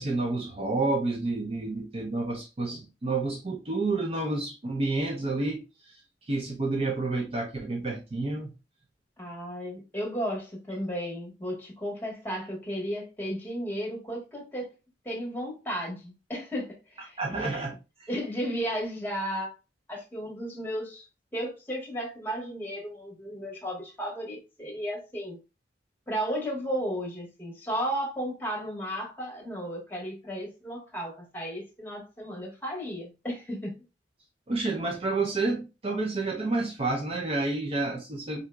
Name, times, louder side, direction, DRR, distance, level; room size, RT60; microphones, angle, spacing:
voice 1, 0.0-5.6 6.3-8.5 17.2-18.1 34.5-38.4, right 3 dB, 35° right, 0.5 m, -29 dB
voice 2, 9.2-14.7 15.0-17.5 18.1-19.5 19.9-21.0 21.3-25.4 26.1-33.7, equal, 10° left, 1.2 m, -34 dB
3.8 x 2.8 x 2.2 m
head